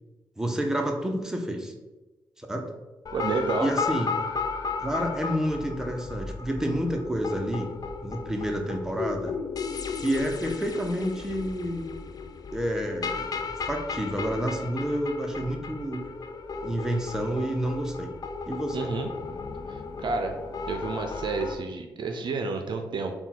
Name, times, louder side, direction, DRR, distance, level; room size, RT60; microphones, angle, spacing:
voice 1, 0.4-1.7 2.4-2.7 3.6-4.1 4.8-7.7 8.0-9.3 10.0-11.9 12.5-13.4 13.7-16.0 16.6-18.1 18.5-18.8, equal, 5° right, 2 dB, 0.8 m, -29 dB
sound 1, 3.1-21.5, left 5 dB, 45° left, 0.4 m, -35 dB
voice 2, 3.1-3.7 18.7-19.1 19.7-20.4 20.7-23.1, right 4 dB, 60° right, 4 dB, 0.5 m, -30 dB
3.6 x 2.3 x 4.2 m, 1.1 s
supercardioid pair, 55°, 9 cm